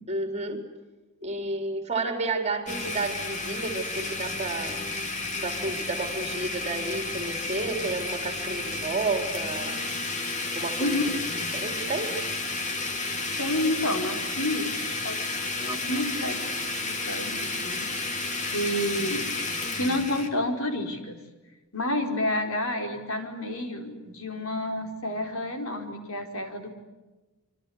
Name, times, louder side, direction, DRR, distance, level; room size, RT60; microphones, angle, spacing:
voice 1, 0.1-0.6 1.2-4.8 5.4-9.8 10.5-12.1, right 3 dB, 30° right, 5 dB, 4.1 m, -31 dB
Domestic sounds home sounds, 2.7-20.3, left 3 dB, 35° left, 3.1 m, -32 dB
voice 2, 10.8-11.1 13.4-14.7 15.0-15.2 15.5-16.4 16.8-17.9 18.5-19.3 19.7-21.2 21.7-26.8, left 1 dB, 65° left, 4 dB, 4.8 m, -29 dB
27.5 x 25.5 x 8.1 m, 1.1 s
head